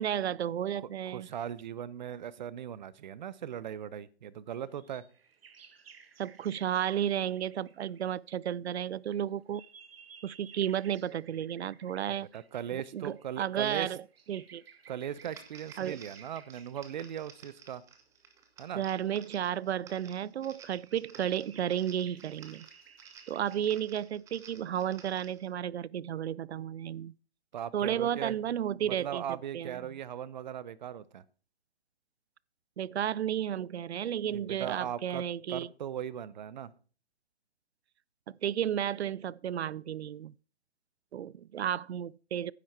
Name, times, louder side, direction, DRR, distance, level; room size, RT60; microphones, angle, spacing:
voice 1, 0.0-1.3 6.2-9.6 10.2-12.3 12.7-14.0 14.3-14.6 15.8-16.0 18.7-22.7 23.3-27.1 27.7-29.2 29.5-29.8 32.8-35.7 38.3-40.3 41.1-42.5, right 10 dB, 80° right, 0.5 m, -33 dB
voice 2, 1.1-5.0 12.1-13.9 14.9-17.8 18.6-18.8 27.5-28.4 28.8-31.2 34.3-35.2 35.5-36.7, right 9 dB, 45° right, 0.8 m, -39 dB
sound 1, 4.6-8.2 8.9-17.1 18.2-18.3 18.9-19.9 20.2-24.0, right 6 dB, 65° right, 1.7 m, -57 dB
sound 2, 15.2-25.5, right 6 dB, 10° right, 0.9 m, -55 dB
10.0 x 7.7 x 5.8 m
hypercardioid pair, 145°, 32 cm